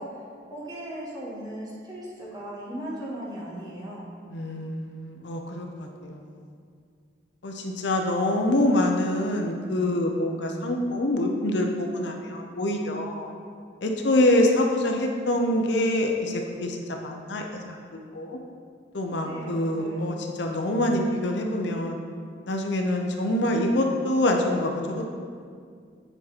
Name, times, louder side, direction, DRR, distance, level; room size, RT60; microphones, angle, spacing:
voice 1, 0.0-4.1 19.2-20.1, right 1 dB, 20° right, -6 dB, 1.5 m, -37 dB
voice 2, 4.3-6.2 7.4-13.3 13.8-18.4 18.9-22.0 22.5-25.1, left 1 dB, 70° left, 2 dB, 0.7 m, -25 dB
9.0 x 4.3 x 4.1 m, 2.1 s
head